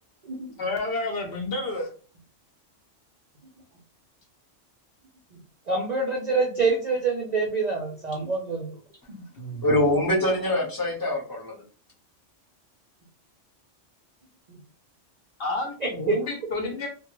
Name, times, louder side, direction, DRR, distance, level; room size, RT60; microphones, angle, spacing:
voice 1, 0.6-1.9 9.4-9.7 15.4-16.9, left 2 dB, 60° left, 1 dB, 0.8 m, -30 dB
voice 2, 5.7-8.7 9.1-9.2 16.1-16.2, right 4 dB, 55° right, -1 dB, 0.5 m, -26 dB
voice 3, 9.6-11.6, left 1 dB, 20° left, -3 dB, 0.7 m, -24 dB
2.2 x 2.2 x 3.0 m, 0.38 s
omnidirectional pair, 1.3 m